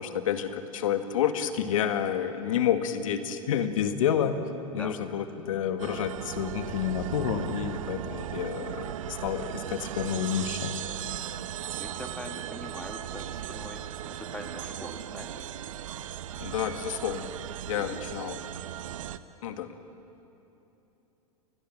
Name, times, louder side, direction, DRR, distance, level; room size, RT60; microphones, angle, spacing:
voice 1, 0.0-4.4 4.7-10.7 16.4-17.3 17.7-18.4 19.4-19.7, left 9 dB, 70° left, 8 dB, 1.7 m, -29 dB
sound 1, 5.8-19.2, right 11 dB, 70° right, 0.9 m, -37 dB
voice 2, 11.8-15.5 17.7-17.9, left 1 dB, 5° left, 4 dB, 2.5 m, -43 dB
29.5 x 21.5 x 6.2 m, 3.0 s
hypercardioid pair, 100°, 18 cm